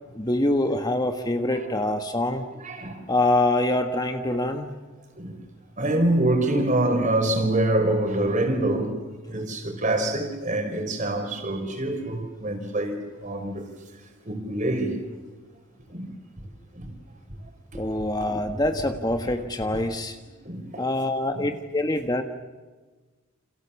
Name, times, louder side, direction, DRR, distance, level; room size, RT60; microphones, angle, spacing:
voice 1, 0.1-2.4 3.1-4.7 17.7-20.2 20.8-22.2, left 1 dB, 20° left, 1.5 m, -25 dB
voice 2, 2.6-3.0 5.2-5.3 5.8-9.0 9.3-13.7 14.2-15.0 15.9-16.1 16.7-16.9 17.3-17.4 17.7-18.1 20.4-20.9 21.3-21.4, right 1 dB, 35° right, 5.0 m, -25 dB
29.5 x 28.0 x 7.2 m
head